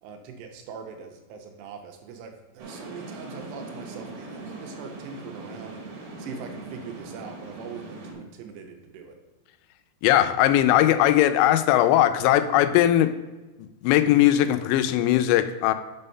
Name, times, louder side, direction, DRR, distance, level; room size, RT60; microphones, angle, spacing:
voice 1, 0.0-5.9 6.2-9.2, right 5 dB, 80° right, 4 dB, 2.8 m, -42 dB
sound 1, 2.6-8.1, right 3 dB, 60° right, 2.5 m, -40 dB
voice 2, 10.0-13.1 13.8-15.7, left 13 dB, 85° left, 10 dB, 2.8 m, -19 dB
6.0 x 5.5 x 5.4 m, 1.2 s
omnidirectional pair, 5.0 m